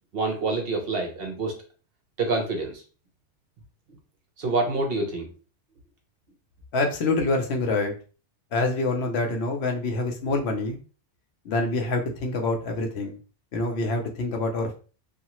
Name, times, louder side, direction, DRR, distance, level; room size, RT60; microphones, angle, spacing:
voice 1, 0.1-1.5 2.2-2.8 4.4-5.3, right 3 dB, 60° right, 2 dB, 0.8 m, -27 dB
voice 2, 6.7-7.9 8.5-10.8 11.5-13.2 13.5-14.7, left 2 dB, 65° left, 3 dB, 0.8 m, -26 dB
2.7 x 2.4 x 2.9 m, 0.37 s
omnidirectional pair, 1.2 m